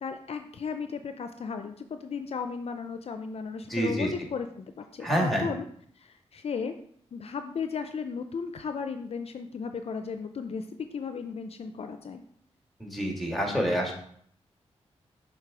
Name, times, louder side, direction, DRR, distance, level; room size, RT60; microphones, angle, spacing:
voice 1, 0.0-5.1 5.4-5.6 6.0-6.7 7.1-12.2, left 5 dB, 60° left, 7 dB, 0.5 m, -35 dB
voice 2, 3.6-4.1 5.0-5.5 12.8-13.9, equal, ahead, 0 dB, 2.1 m, -27 dB
6.5 x 3.9 x 4.9 m, 0.63 s
cardioid pair, 75°, 12 cm